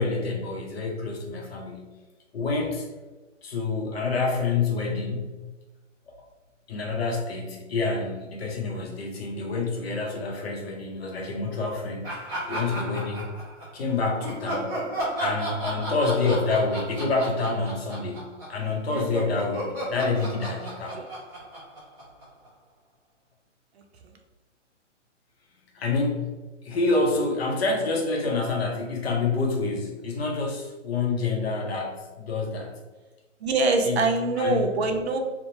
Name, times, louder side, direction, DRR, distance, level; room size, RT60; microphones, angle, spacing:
voice 1, 0.0-1.9 2.3-2.9 3.4-5.3 6.1-6.2 6.7-12.1 12.5-13.3 13.7-14.8 15.2-21.0 25.7-32.8 33.8-34.0 34.4-34.7, left 3 dB, 55° left, 1 dB, 0.7 m, -27 dB
Laughter, 12.0-13.8 14.2-18.6 18.9-22.5, right 1 dB, 10° right, 0.7 m, -34 dB
voice 2, 33.4-35.2, right 3 dB, 60° right, 3 dB, 0.5 m, -24 dB
2.8 x 2.1 x 2.6 m, 1.2 s
figure-of-eight pair, 135°, 37 cm